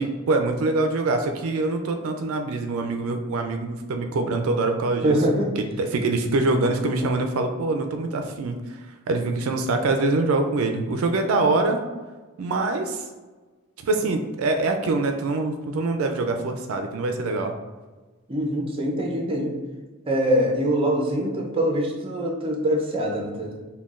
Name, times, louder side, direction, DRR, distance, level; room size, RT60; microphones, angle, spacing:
voice 1, 0.0-5.2 5.6-8.8 9.1-11.8 12.4-13.0 13.8-17.5, right 2 dB, 80° right, 5 dB, 0.4 m, -24 dB
voice 2, 5.0-5.5 18.3-19.5 20.1-23.5, equal, 25° right, 0 dB, 0.6 m, -23 dB
5.6 x 2.2 x 2.4 m, 1.3 s
head